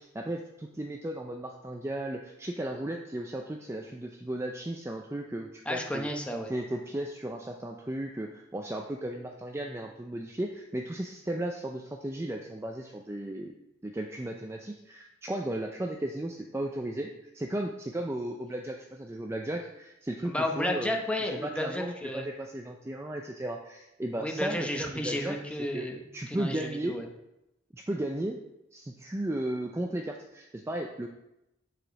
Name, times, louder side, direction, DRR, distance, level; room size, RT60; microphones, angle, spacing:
voice 1, 0.1-6.1 6.5-13.5 13.8-21.0 21.3-25.4 25.7-25.9 26.1-27.0 27.7-28.4 28.7-31.1, right 1 dB, 15° right, 2 dB, 0.4 m, -35 dB
voice 2, 5.7-6.5 20.2-22.3 24.2-27.1, left 1 dB, 5° left, 3 dB, 0.8 m, -32 dB
7.4 x 5.0 x 5.2 m, 0.89 s
head